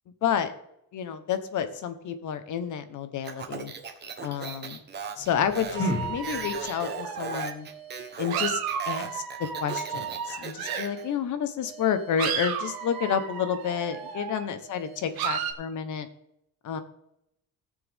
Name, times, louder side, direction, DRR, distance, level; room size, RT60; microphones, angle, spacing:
voice 1, 0.2-0.5 0.9-3.7 4.2-4.8 5.2-7.7 8.2-8.6 8.9-9.2 9.6-16.1 16.6-16.8, left 8 dB, 50° left, 10 dB, 1.1 m, -30 dB
Speech, 3.2-11.0, right 5 dB, 30° right, 1.1 m, -38 dB
sound 1, 5.2-6.8, left 1 dB, 30° left, 2.1 m, -33 dB
sound 2, 5.7-11.1 11.6-15.5, right 8 dB, 75° right, 1.5 m, -34 dB
17.5 x 6.8 x 3.6 m, 0.79 s
cardioid pair, 170°, 37 cm